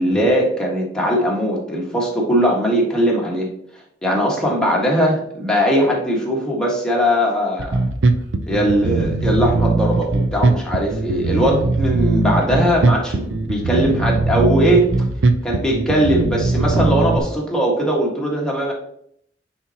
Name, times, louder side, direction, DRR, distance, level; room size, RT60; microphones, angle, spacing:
voice 1, 0.0-3.5 3.7-7.8 8.5-14.9 15.4-18.7, equal, 5° left, -3 dB, 1.6 m, -19 dB
Bass guitar, 7.6-17.2, right 3 dB, 85° right, 0.6 m, -19 dB
9.3 x 4.4 x 2.9 m, 0.70 s
head